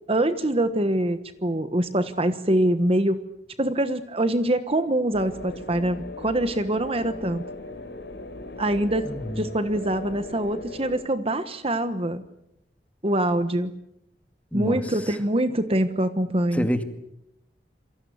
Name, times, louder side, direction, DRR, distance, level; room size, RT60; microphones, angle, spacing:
voice 1, 0.1-3.2 3.6-7.4 8.6-12.2 13.0-13.7 14.5-16.7, right 1 dB, 35° right, 10 dB, 1.3 m, -24 dB
sound 1, 5.1-11.0, left 2 dB, 80° left, 4.2 m, -38 dB
voice 2, 9.1-9.4 14.5-14.8 16.5-16.8, equal, 10° left, 7 dB, 2.2 m, -26 dB
28.0 x 24.0 x 8.1 m, 0.82 s
head